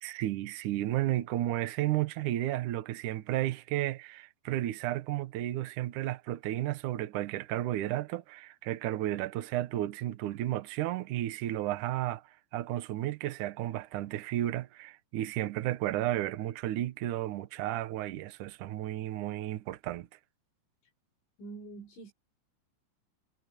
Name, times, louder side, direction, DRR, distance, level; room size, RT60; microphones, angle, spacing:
voice 1, 0.0-12.2 12.5-20.1, right 14 dB, 75° right, 1.8 m, -33 dB
voice 2, 21.4-22.1, right 3 dB, 80° left, 9.3 m, -45 dB
omnidirectional pair, 5.3 m